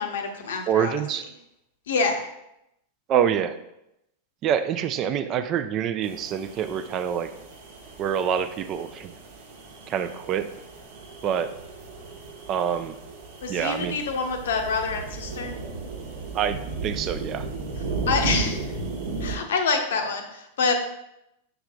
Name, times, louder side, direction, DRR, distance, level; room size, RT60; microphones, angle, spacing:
voice 1, 0.0-0.9 1.9-2.2 13.4-15.6 18.1-18.6 19.2-20.7, left 4 dB, 60° left, 5 dB, 0.8 m, -26 dB
voice 2, 0.7-1.3 3.1-3.6 4.4-7.3 8.0-9.1 9.9-10.5 11.2-11.5 12.5-13.0 13.5-14.0 16.3-16.6 16.8-17.5, right 8 dB, 35° right, 11 dB, 0.4 m, -26 dB
sound 1, 6.0-19.3, right 3 dB, 55° right, 1.0 m, -35 dB
6.8 x 6.5 x 2.3 m, 0.85 s
figure-of-eight pair, 90°, 0 cm